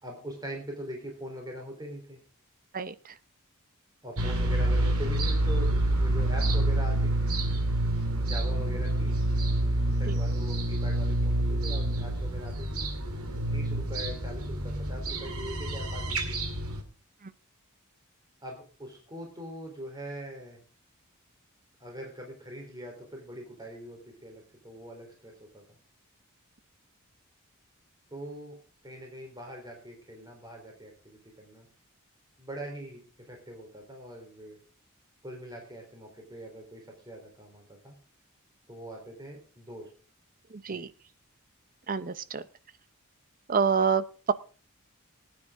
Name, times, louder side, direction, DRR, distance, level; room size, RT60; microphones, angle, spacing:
voice 1, 0.0-2.2 4.0-7.4 8.2-9.1 10.0-12.8 13.5-16.4 18.4-20.6 21.8-25.8 28.1-28.6 28.8-31.7 32.4-34.6 35.2-37.9 38.7-39.9 40.7-40.9, equal, 20° right, 1 dB, 3.6 m, -42 dB
voice 2, 2.7-3.1 10.1-10.2 17.2-17.3 40.5-40.9 41.9-42.4 43.5-44.3, right 6 dB, 40° right, 15 dB, 0.7 m, -28 dB
sound 1, 4.2-16.8, right 1 dB, 85° right, 2.3 m, -28 dB
19.0 x 9.6 x 3.7 m, 0.38 s
head